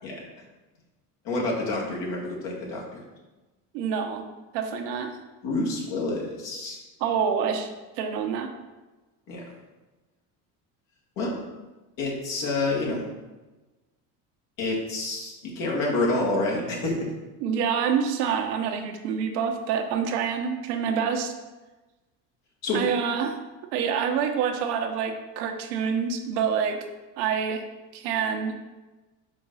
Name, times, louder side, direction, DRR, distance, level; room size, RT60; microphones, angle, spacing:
voice 1, 1.2-3.0 5.4-6.8 9.3-9.5 11.2-11.3 12.0-13.0 14.6-16.9 22.6-22.8, left 2 dB, 65° left, -3 dB, 2.1 m, -28 dB
voice 2, 3.7-4.3 4.5-5.1 7.0-7.7 8.0-8.5 17.4-21.3 22.7-23.4 23.7-26.8 27.2-27.6 27.9-28.5, right 7 dB, 85° right, 5 dB, 0.9 m, -27 dB
5.1 x 3.8 x 5.5 m, 1.1 s
supercardioid pair, 95°, 48 cm